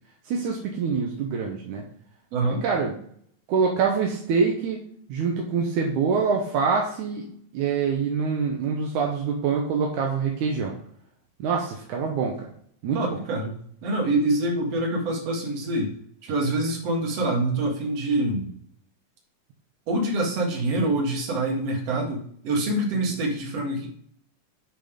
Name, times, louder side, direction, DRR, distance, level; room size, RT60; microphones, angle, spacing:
voice 1, 0.2-1.8 2.6-3.0 3.5-4.8 5.1-7.3 7.5-10.7 11.4-12.5 12.8-13.2, right 5 dB, 75° right, 0 dB, 2.4 m, -25 dB
voice 2, 2.3-2.6 12.9-13.5 13.8-15.9 16.2-18.5 19.9-23.9, right 2 dB, 55° right, 0 dB, 2.7 m, -25 dB
9.1 x 4.0 x 5.0 m, 0.63 s
omnidirectional pair, 3.6 m